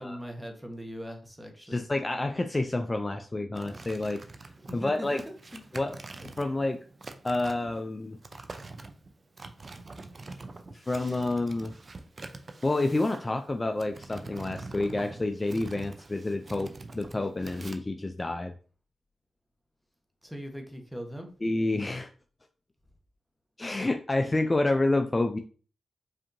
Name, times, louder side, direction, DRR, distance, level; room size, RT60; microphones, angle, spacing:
voice 1, 0.0-1.8 4.6-5.6 20.2-21.3, equal, 5° right, 3 dB, 1.0 m, -40 dB
voice 2, 1.7-4.2 4.7-5.2 5.7-6.8 7.2-8.2 10.7-11.7 12.6-18.5 21.4-22.1 23.6-25.4, left 2 dB, 30° left, 5 dB, 0.3 m, -29 dB
sound 1, 3.5-17.8, right 3 dB, 45° right, 0.5 m, -45 dB
5.0 x 2.7 x 2.6 m, 0.40 s
supercardioid pair, 50°, 0 cm